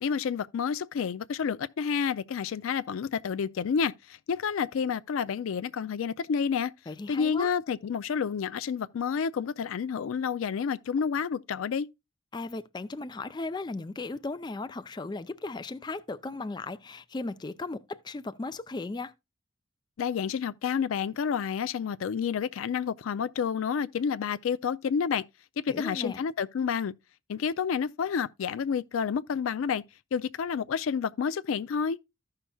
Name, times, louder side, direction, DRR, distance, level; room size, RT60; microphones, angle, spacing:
voice 1, 0.0-6.7 7.1-11.9 20.0-25.2 25.6-26.9 27.3-29.8 30.1-32.0, left 6 dB, 90° left, 0.4 m, -29 dB
voice 2, 6.9-7.5 12.3-19.1 25.7-26.2, left 3 dB, 20° left, 0.4 m, -36 dB
14.5 x 5.7 x 2.3 m
head